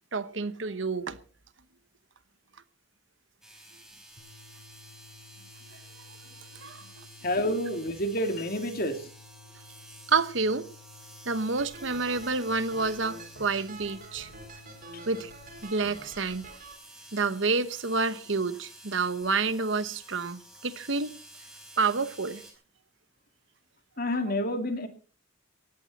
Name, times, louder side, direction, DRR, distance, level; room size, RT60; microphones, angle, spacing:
voice 1, 0.1-1.2 6.5-7.0 10.1-10.7 11.3-14.3 15.1-15.3 15.6-16.5 17.1-21.1 21.8-22.4, right 4 dB, 65° right, 1.1 m, -29 dB
sound 1, 3.4-22.5, right 1 dB, ahead, 4.4 m, -51 dB
sound 2, 4.2-15.6, left 4 dB, 60° left, 4.6 m, -54 dB
voice 2, 7.2-9.0 24.0-24.9, left 1 dB, 45° left, 2.5 m, -29 dB
sound 3, 11.6-16.7, right 2 dB, 40° right, 4.1 m, -46 dB
18.0 x 14.5 x 4.2 m
head